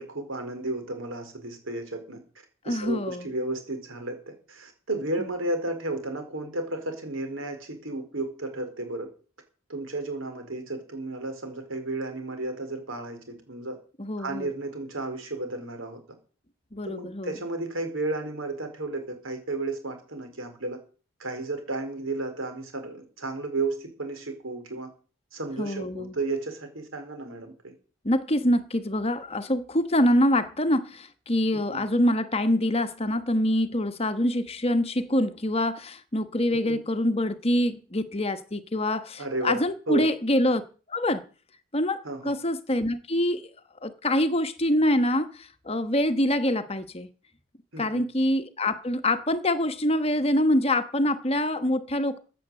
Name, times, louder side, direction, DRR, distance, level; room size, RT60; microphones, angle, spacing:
voice 1, 0.0-2.2 2.6-9.1 9.7-13.8 14.2-16.0 16.8-20.8 21.2-24.9 25.3-27.7 31.7-31.8 36.6-36.8 39.2-39.6 39.9-40.1 42.0-42.3 47.7-48.0, right 2 dB, 75° right, 4.4 m, -33 dB
voice 2, 2.6-3.3 14.0-14.5 16.7-17.3 25.6-26.2 28.0-40.6 40.9-41.2 41.7-43.4 43.8-47.1 47.8-52.2, left 1 dB, 30° left, 1.1 m, -25 dB
15.5 x 7.9 x 7.7 m
head